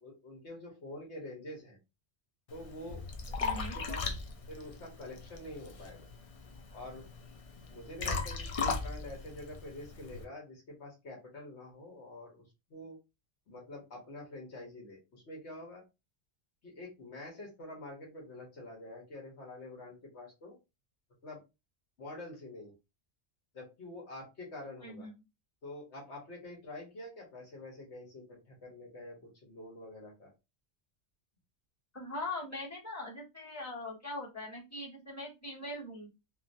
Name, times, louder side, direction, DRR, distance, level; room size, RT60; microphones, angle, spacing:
voice 1, 0.0-1.8 2.5-3.1 3.5-4.1 4.5-6.1 6.7-7.0 7.7-13.0 13.5-15.8 16.6-20.6 21.2-21.4 22.0-22.7 23.5-25.1 25.6-30.3, left 1 dB, 75° left, -1 dB, 1.4 m, -47 dB
Liquid, 2.5-10.2, left 4 dB, 50° left, 0.4 m, -38 dB
voice 2, 3.4-3.7 24.8-25.1 31.9-36.1, left 2 dB, 15° left, -6 dB, 1.5 m, -41 dB
2.9 x 2.5 x 2.6 m, 0.25 s
omnidirectional pair, 1.2 m